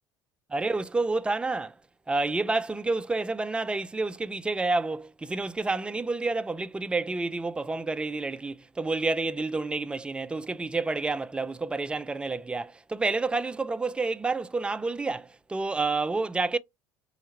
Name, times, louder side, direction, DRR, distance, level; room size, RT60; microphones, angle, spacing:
voice 1, 0.5-1.7 2.1-16.6, right 3 dB, 10° right, 0.3 m, -29 dB
3.2 x 2.8 x 2.9 m
figure-of-eight pair, 65°, 12 cm